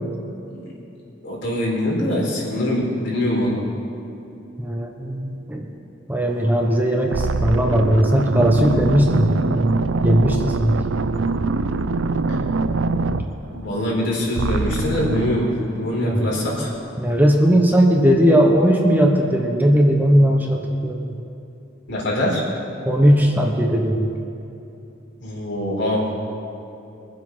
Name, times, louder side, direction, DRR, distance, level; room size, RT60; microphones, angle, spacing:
voice 1, 1.2-3.6 13.5-16.7 21.9-22.4 25.2-26.1, left 1 dB, 65° left, -4 dB, 4.3 m, -23 dB
voice 2, 4.6-5.7 6.1-10.8 13.1-13.3 16.0-16.2 17.0-21.1 22.8-24.1, equal, 10° right, 0 dB, 1.1 m, -18 dB
sound 1, 6.5-6.7 7.1-14.0 14.4-15.5, right 3 dB, 90° right, 0.6 m, -23 dB
23.0 x 7.8 x 5.7 m, 2.8 s
head